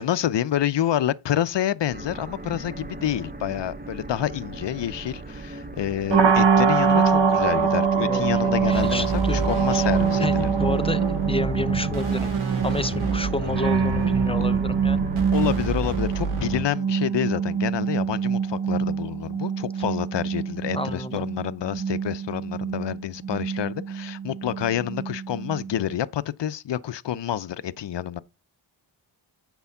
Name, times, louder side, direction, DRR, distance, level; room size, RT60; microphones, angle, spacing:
voice 1, 0.0-10.5 15.3-28.2, left 11 dB, 60° left, 0.6 m, -28 dB
sound 1, 1.9-15.9, right 2 dB, 20° right, 0.8 m, -39 dB
sound 2, 6.1-25.9, right 6 dB, 60° right, 1.1 m, -24 dB
voice 2, 8.0-9.9 10.2-12.3 12.6-15.1 20.7-21.2, left 2 dB, 10° left, 0.5 m, -30 dB
sound 3, 8.6-16.6, right 3 dB, 80° right, 2.8 m, -29 dB
8.2 x 4.4 x 7.1 m
wide cardioid pair, 100°, 49 cm